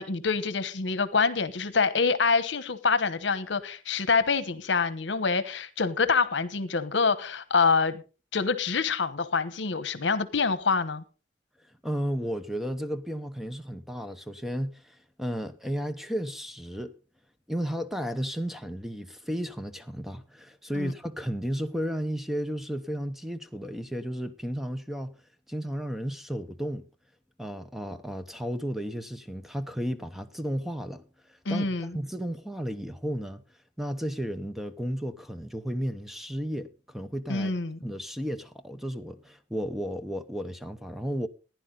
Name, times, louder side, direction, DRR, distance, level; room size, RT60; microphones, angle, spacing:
voice 1, 0.0-8.0 8.3-11.0 20.7-20.9 31.4-32.0 37.3-37.8, left 4 dB, 70° left, 1.0 m, -26 dB
voice 2, 11.8-16.9 17.5-25.2 25.5-26.9 27.4-33.4 33.8-37.5 37.8-41.3, equal, ahead, 0.8 m, -33 dB
15.5 x 10.5 x 3.8 m
head